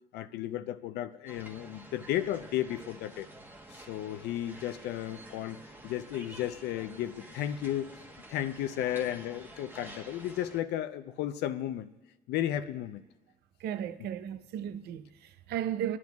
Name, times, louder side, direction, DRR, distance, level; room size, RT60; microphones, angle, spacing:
voice 1, 0.1-3.3 3.7-5.6 5.8-7.9 8.3-11.9 12.3-13.0, left 12 dB, 80° left, 0.6 m, -34 dB
sound 1, 1.3-10.6, right 1 dB, 10° right, 1.2 m, -50 dB
voice 2, 13.6-16.0, right 10 dB, 75° right, 0.7 m, -35 dB
24.0 x 11.0 x 2.3 m
cardioid pair, 110°, 17 cm